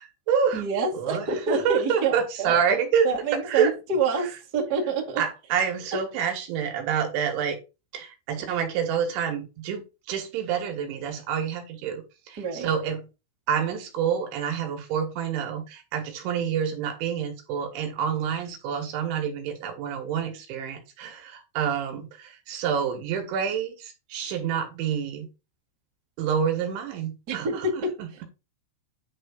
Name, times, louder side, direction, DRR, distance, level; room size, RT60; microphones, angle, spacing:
voice 1, 0.0-0.6 0.9-3.1 3.5-3.7 5.2-7.6 7.9-12.0 12.3-13.1 13.5-25.3 26.2-27.6 28.0-28.2, right 7 dB, 75° right, 3.8 m, -28 dB
voice 2, 0.5-2.6 3.0-5.2 12.4-12.7 27.3-27.9, right 4 dB, 35° right, 1.4 m, -27 dB
10.5 x 3.5 x 5.2 m
omnidirectional pair, 5.6 m